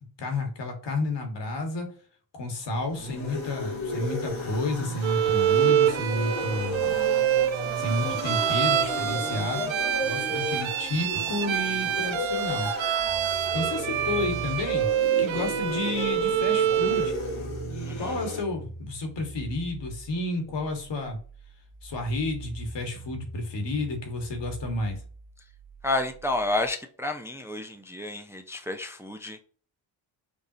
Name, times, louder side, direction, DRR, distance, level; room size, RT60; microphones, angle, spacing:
voice 1, 0.2-1.9 2.3-6.9 7.8-9.7 10.0-12.7 13.5-14.9 15.2-17.2 18.0-21.2 21.8-25.0, left 2 dB, 65° left, 4 dB, 1.6 m, -31 dB
sound 1, 2.8-18.4, left 1 dB, 80° left, 1.9 m, -34 dB
Bowed string instrument, 5.0-17.2, right 11 dB, 85° right, 0.6 m, -26 dB
sound 2, 13.1-26.7, right 2 dB, 30° right, 1.9 m, -44 dB
voice 2, 17.8-18.1 25.8-29.4, left 2 dB, 5° right, 6 dB, 0.5 m, -30 dB
5.2 x 2.4 x 2.7 m, 0.42 s
cardioid pair, 70°, 45 cm